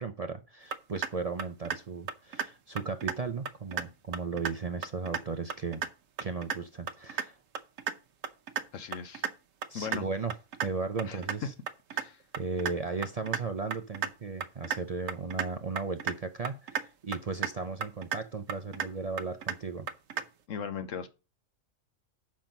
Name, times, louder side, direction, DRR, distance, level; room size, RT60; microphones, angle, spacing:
voice 1, 0.0-5.9 6.2-7.4 9.7-10.4 10.6-11.5 12.4-19.9, right 4 dB, 45° right, 0.5 m, -36 dB
sound 1, 0.7-1.1 1.4-1.8 2.1-2.5 2.8-3.2 3.5-3.8 4.1-4.5 4.8-5.2 5.5-5.9 6.2-6.6 6.9-7.3 7.6-7.9 8.2-8.6 8.9-9.3 9.6-10.0 10.3-10.7 11.0-11.4 11.7-12.0 12.3-12.7 13.0-13.4 13.7-14.1 14.4-14.8 15.1-15.5 15.8-16.2 16.4-16.9 17.1-17.5 17.8-18.2 18.5-18.9 19.2-19.6 19.9-20.2, right 7 dB, 90° right, 1.1 m, -33 dB
voice 2, 8.7-9.3 9.7-10.1 11.0-11.2 11.9-12.2 20.5-21.1, left 7 dB, 85° left, 1.3 m, -38 dB
7.3 x 5.9 x 5.2 m
omnidirectional pair, 1.3 m